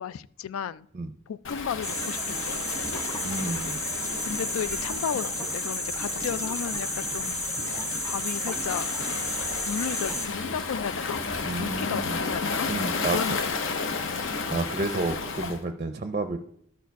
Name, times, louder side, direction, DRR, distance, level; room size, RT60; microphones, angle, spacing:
voice 1, 0.0-0.9 1.3-2.7 4.2-7.7 8.0-8.9 9.5-11.2 11.6-14.2, left 8 dB, 80° left, 18 dB, 0.3 m, -34 dB
Waves surf, 1.4-15.6, left 4 dB, 65° left, 0.8 m, -33 dB
sound 1, 1.8-10.3, left 1 dB, 15° left, 1.4 m, -32 dB
voice 2, 3.2-3.8 11.5-12.2 12.7-13.4 14.5-16.4, right 2 dB, 35° right, 7 dB, 0.5 m, -31 dB
13.0 x 4.7 x 4.6 m, 0.68 s
head